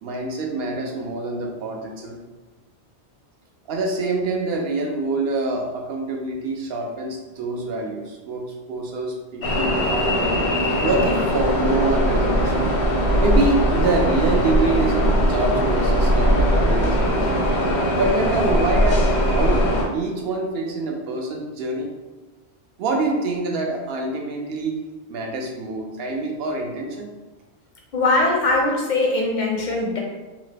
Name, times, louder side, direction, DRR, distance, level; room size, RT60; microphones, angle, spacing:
voice 1, 0.0-2.2 3.7-10.4 10.8-12.7 13.2-17.4 18.0-19.7 19.9-21.9 22.8-24.8 25.1-27.1, right 2 dB, 70° right, 2 dB, 0.7 m, -26 dB
sound 1, 9.4-19.9, equal, 80° left, 0.9 m, -20 dB
voice 2, 27.9-30.0, left 2 dB, 55° left, -1 dB, 0.5 m, -21 dB
2.9 x 2.0 x 3.2 m, 1.2 s
omnidirectional pair, 1.1 m